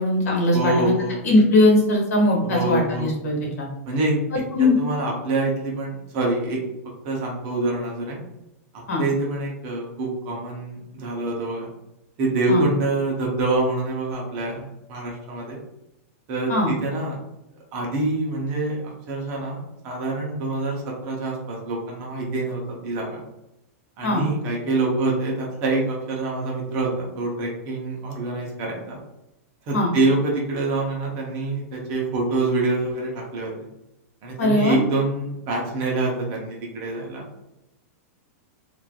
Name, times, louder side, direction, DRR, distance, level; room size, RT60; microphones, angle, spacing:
voice 1, 0.0-0.9 1.2-3.7 4.3-4.7 8.9-9.0 12.5-12.6 16.5-16.7 24.0-24.2 29.7-29.9 34.4-34.8, left 1 dB, 90° left, -1 dB, 1.1 m, -20 dB
voice 2, 0.5-1.2 2.4-3.1 3.9-4.2 4.6-6.6 7.0-8.2 9.0-11.7 12.2-15.6 16.3-17.2 17.7-23.2 24.0-29.0 29.7-33.5 34.2-37.3, right 2 dB, 25° right, -1 dB, 0.6 m, -26 dB
3.0 x 2.4 x 2.2 m, 0.90 s
supercardioid pair, 175°, 8 cm